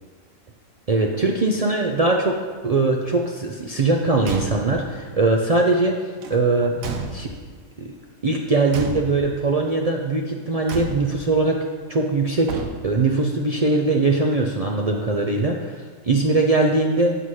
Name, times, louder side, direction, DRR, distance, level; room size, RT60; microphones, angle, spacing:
voice 1, 0.9-2.4 2.6-6.7 7.1-7.3 7.8-7.9 8.2-17.2, right 3 dB, 60° right, 1 dB, 0.4 m, -21 dB
Car / Truck / Slam, 4.2-4.9 6.2-7.6 8.7-9.5 10.7-11.3 12.4-13.1, right 4 dB, 90° right, 1.2 m, -32 dB
7.9 x 5.7 x 4.8 m, 1.5 s
omnidirectional pair, 1.4 m